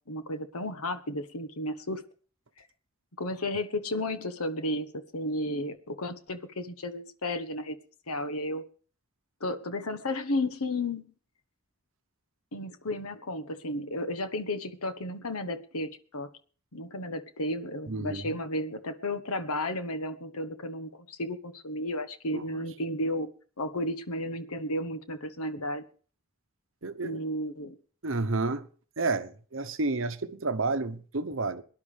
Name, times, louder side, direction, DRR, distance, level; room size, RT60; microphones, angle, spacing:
voice 1, 0.1-2.0 3.2-7.8 8.1-8.6 9.4-11.1 12.5-16.3 16.7-23.3 23.6-25.8 27.0-27.8, left 1 dB, 85° left, 1.3 m, -33 dB
voice 2, 17.9-18.4 22.3-22.6 26.8-27.2 28.0-28.7 29.0-31.6, right 3 dB, 60° right, 0.9 m, -31 dB
23.0 x 10.5 x 3.4 m
head